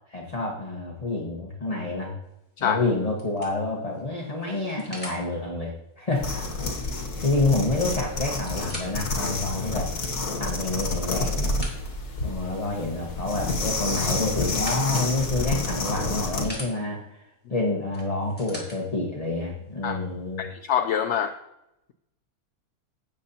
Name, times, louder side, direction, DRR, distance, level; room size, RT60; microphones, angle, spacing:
voice 1, 0.1-2.2 2.6-6.5 7.2-9.9 10.4-11.5 12.2-17.2 17.5-20.4, left 2 dB, 25° left, -2 dB, 1.3 m, -28 dB
sound 1, 2.3-2.6 3.2-5.2 7.3-7.4 7.6-7.7 8.2-9.1 9.7-9.8 10.5-12.1 13.8-15.1 15.8-16.7 17.9-18.8 19.7-19.8, equal, 5° left, 3.1 m, -41 dB
sound 2, 6.2-16.5, left 2 dB, 85° left, 1.9 m, -29 dB
voice 2, 20.4-21.3, left 8 dB, 65° left, 7 dB, 0.7 m, -25 dB
16.5 x 7.1 x 2.8 m, 0.86 s
omnidirectional pair, 1.6 m